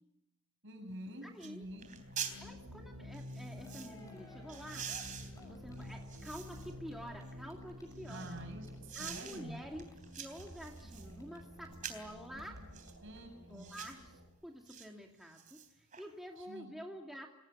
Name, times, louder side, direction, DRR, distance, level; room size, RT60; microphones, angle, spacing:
voice 1, 0.6-1.9 8.1-9.6 13.0-13.7 16.4-16.7, right 1 dB, 60° right, 5 dB, 6.9 m, -47 dB
sound 1, 0.9-1.0 1.4-1.5 1.8-2.4 3.1-3.9 4.5-6.8 7.3-8.4 8.9-9.4 9.8-11.1 11.7-12.1 12.7-13.0 13.6-14.0 14.7-14.9 15.2-16.0 16.4-16.5, right 8 dB, 35° right, 3.6 m, -46 dB
voice 2, 1.2-1.7 2.4-4.9 5.3-8.3 8.9-9.8 10.2-12.6 13.5-14.1 14.4-17.3, equal, ahead, 1 dB, 2.5 m, -48 dB
sound 2, 1.6-14.3, left 1 dB, 80° right, 6.4 m, -50 dB
Cheering, 3.2-3.3 3.4-12.6 12.8-12.9 13.2-13.3, left 2 dB, 15° left, 5.9 m, -61 dB
27.0 x 18.0 x 9.6 m, 0.87 s
head